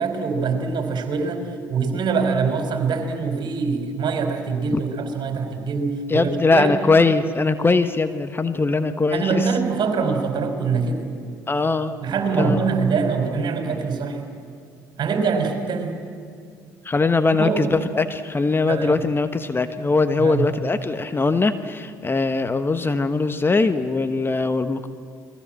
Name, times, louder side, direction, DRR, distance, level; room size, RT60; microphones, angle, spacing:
voice 1, 0.0-1.4 1.7-6.8 9.1-11.1 12.0-14.2 15.0-15.9 17.4-17.7 18.7-19.0 20.2-20.5, right 5 dB, 50° right, 5 dB, 4.6 m, -24 dB
voice 2, 6.1-9.5 11.5-11.9 12.4-12.6 16.8-24.9, left 3 dB, 20° left, 10 dB, 1.2 m, -21 dB
29.0 x 22.0 x 7.7 m, 2.2 s
hypercardioid pair, 55°, 10 cm